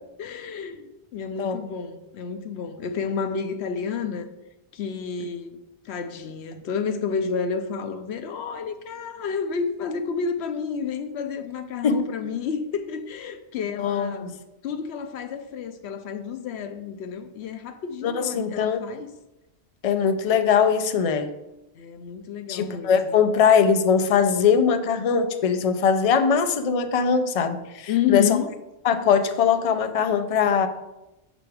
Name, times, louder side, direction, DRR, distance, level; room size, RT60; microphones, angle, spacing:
voice 1, 0.2-4.3 4.7-5.6 5.9-19.1 21.8-23.1 27.9-28.5, left 6 dB, 85° left, 0.9 m, -30 dB
voice 2, 13.8-14.4 18.0-18.8 19.8-21.4 22.5-28.4 28.8-30.7, left 6 dB, 50° left, 0.4 m, -21 dB
6.1 x 5.6 x 3.4 m
omnidirectional pair, 1.1 m